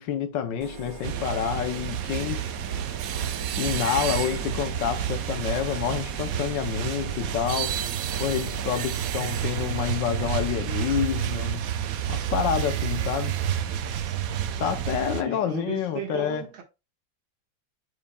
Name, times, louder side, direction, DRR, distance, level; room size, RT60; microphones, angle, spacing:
voice 1, 0.0-2.5 3.6-7.8 8.2-11.6 12.1-13.4 14.6-16.5, left 9 dB, 70° left, 1.2 m, -28 dB
sound 1, 0.6-10.5, right 4 dB, 45° right, 1.6 m, -41 dB
sound 2, 1.0-15.2, right 9 dB, 90° right, 0.7 m, -30 dB
voice 2, 15.2-16.6, right 7 dB, 70° right, 2.2 m, -36 dB
8.1 x 5.5 x 2.2 m
omnidirectional pair, 2.3 m